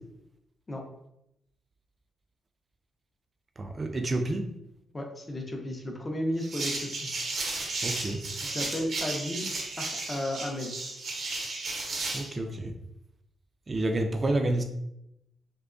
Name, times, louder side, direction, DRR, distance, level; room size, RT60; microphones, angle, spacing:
voice 1, 3.6-4.5 7.8-8.2 12.1-12.7 13.7-14.6, right 2 dB, 35° right, 5 dB, 0.4 m, -29 dB
voice 2, 4.9-7.1 8.4-9.5 9.8-10.7, left 1 dB, 30° left, 2 dB, 0.5 m, -33 dB
sound 1, 6.4-12.3, right 3 dB, 65° right, 0.7 m, -34 dB
2.7 x 2.2 x 2.4 m, 0.81 s
cardioid pair, 80°, 0 cm